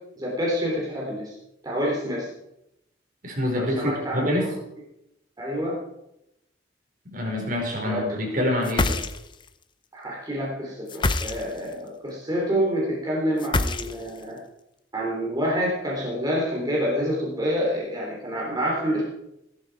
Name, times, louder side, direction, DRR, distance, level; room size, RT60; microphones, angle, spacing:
voice 1, 0.2-1.4 1.6-2.3 3.6-4.5 5.4-5.8 7.9-8.1 9.9-14.4 14.9-19.0, equal, 20° right, -4 dB, 3.4 m, -27 dB
voice 2, 3.2-4.5 7.0-9.0, left 1 dB, 45° right, 0 dB, 4.7 m, -26 dB
sound 1, 8.6-9.5 10.9-11.7 13.4-14.2, left 2 dB, 25° left, 0.7 m, -25 dB
15.5 x 13.5 x 4.8 m, 0.85 s
head